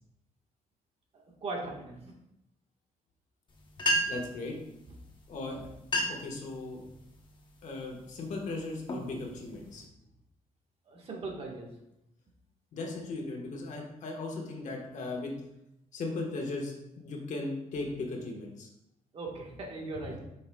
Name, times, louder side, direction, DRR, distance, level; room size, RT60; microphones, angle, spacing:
voice 1, 1.4-2.0 4.0-4.1 10.9-11.7 19.1-20.2, right 3 dB, 45° right, -1 dB, 1.5 m, -38 dB
sound 1, 3.5-3.6 3.8-4.4 5.3-5.4 5.8-6.3 6.8-7.2 7.8-8.1 8.6-9.8, equal, 35° left, 1.0 m, -31 dB
voice 2, 4.1-4.6 5.3-5.6 6.1-6.8 7.6-9.8 12.7-15.3 15.9-18.7 20.1-20.2, left 3 dB, 65° left, 0 dB, 1.4 m, -37 dB
8.1 x 5.6 x 2.3 m, 0.85 s
cardioid pair, 140°, 14 cm